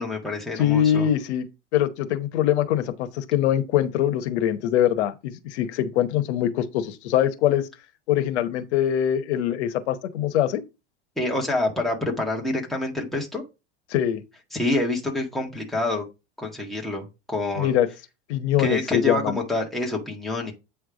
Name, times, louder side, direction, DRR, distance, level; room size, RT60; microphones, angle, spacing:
voice 1, 0.0-1.1 11.2-13.4 14.5-16.0 16.4-17.7 18.6-20.5, left 2 dB, ahead, 1.6 m, -27 dB
voice 2, 0.6-1.5 1.7-7.7 8.1-10.6 13.9-14.2 17.6-17.9 18.3-19.4, left 11 dB, 85° left, 1.0 m, -23 dB
8.4 x 3.4 x 5.0 m
supercardioid pair, 140°, 33 cm